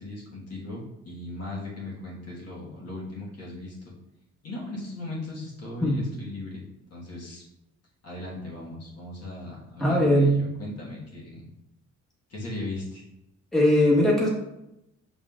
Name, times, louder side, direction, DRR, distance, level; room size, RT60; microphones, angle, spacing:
voice 1, 0.0-3.9 4.4-7.4 8.0-11.5 12.3-13.0, left 2 dB, 55° left, -4 dB, 1.6 m, -38 dB
voice 2, 9.8-10.4 13.5-14.3, equal, ahead, -4 dB, 1.2 m, -20 dB
5.4 x 4.0 x 2.5 m, 0.88 s
cardioid pair, 90°, 30 cm